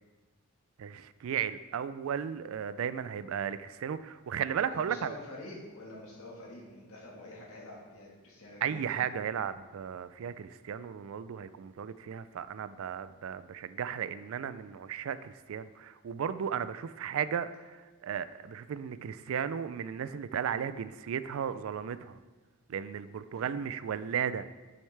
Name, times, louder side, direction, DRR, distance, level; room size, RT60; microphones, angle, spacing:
voice 1, 0.8-5.1 8.6-22.2 22.7-24.5, right 8 dB, 70° right, 14 dB, 0.3 m, -35 dB
voice 2, 4.6-9.1 23.4-23.5, left 1 dB, 80° left, -4 dB, 1.7 m, -47 dB
8.7 x 6.4 x 3.3 m, 1.3 s
head